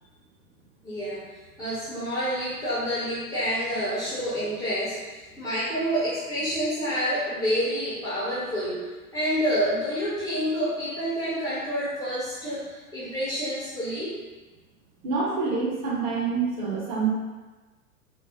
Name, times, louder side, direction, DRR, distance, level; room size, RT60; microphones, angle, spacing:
voice 1, 0.8-1.2 1.6-8.9 9.1-14.2, equal, 10° left, -10 dB, 0.7 m, -28 dB
voice 2, 15.0-17.1, right 5 dB, 35° right, -5 dB, 1.0 m, -26 dB
3.9 x 2.1 x 3.5 m, 1.2 s
figure-of-eight pair, 100°, 45 cm